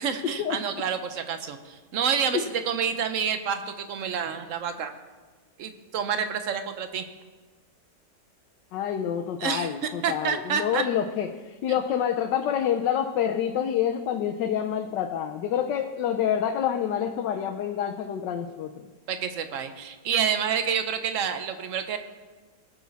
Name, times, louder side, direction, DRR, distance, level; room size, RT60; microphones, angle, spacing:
voice 1, 0.0-4.9 5.6-7.0 9.4-9.7 10.0-10.8 11.7-11.8 19.1-22.0, right 7 dB, 55° right, 8 dB, 1.1 m, -28 dB
voice 2, 8.7-18.8, left 9 dB, 85° left, 4 dB, 1.3 m, -27 dB
19.5 x 7.2 x 4.1 m, 1.3 s
omnidirectional pair, 1.8 m